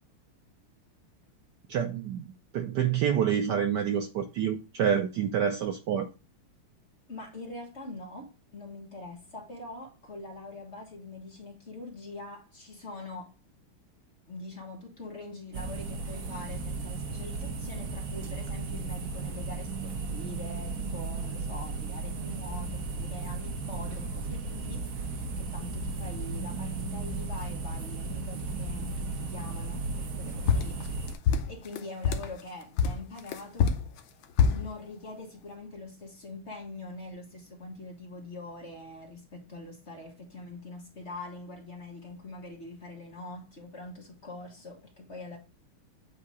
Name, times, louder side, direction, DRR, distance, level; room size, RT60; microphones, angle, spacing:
voice 1, 1.7-6.1, right 8 dB, 70° right, 1.1 m, -28 dB
voice 2, 7.1-13.3 14.3-30.8 31.5-33.8 34.5-45.4, left 2 dB, 35° left, 1.5 m, -43 dB
sound 1, 15.5-31.1, right 3 dB, 50° right, 1.1 m, -35 dB
sound 2, 30.5-32.3 32.8-34.7, left 6 dB, 75° left, 1.5 m, -25 dB
8.5 x 2.8 x 4.8 m
omnidirectional pair, 2.4 m